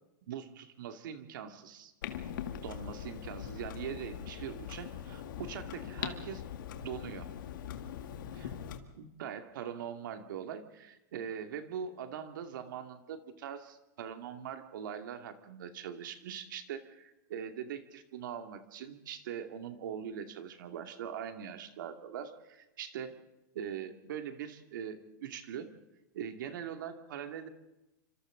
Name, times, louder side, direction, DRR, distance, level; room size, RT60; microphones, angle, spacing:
voice 1, 0.3-1.9 2.6-6.4 6.8-7.3 8.3-8.5 9.0-23.1 23.5-25.7 26.1-27.5, right 8 dB, 75° right, 6 dB, 2.4 m, -42 dB
Clock, 2.0-8.8, left 9 dB, 75° left, 2.1 m, -41 dB
29.0 x 26.0 x 3.9 m, 0.96 s
hypercardioid pair, 125°, 11 cm